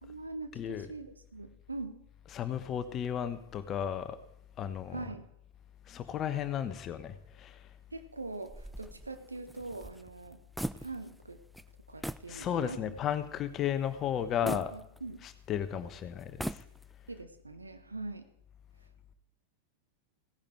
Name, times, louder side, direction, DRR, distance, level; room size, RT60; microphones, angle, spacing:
voice 1, 0.0-2.0 4.9-5.2 7.9-10.4 10.7-11.4 11.9-13.0 14.4-15.2 17.1-18.2, right 3 dB, 80° right, 1.2 m, -42 dB
voice 2, 0.5-0.9 2.3-4.2 4.6-5.1 5.9-7.7 12.3-14.7 15.2-16.6, left 9 dB, 30° left, 1.1 m, -34 dB
sound 1, 8.5-11.3 11.5-11.7 12.0-12.3 12.8-12.9 14.5-15.5 16.2-17.1, equal, ahead, 0.4 m, -40 dB
16.0 x 10.5 x 4.6 m
figure-of-eight pair, 90°, 0 cm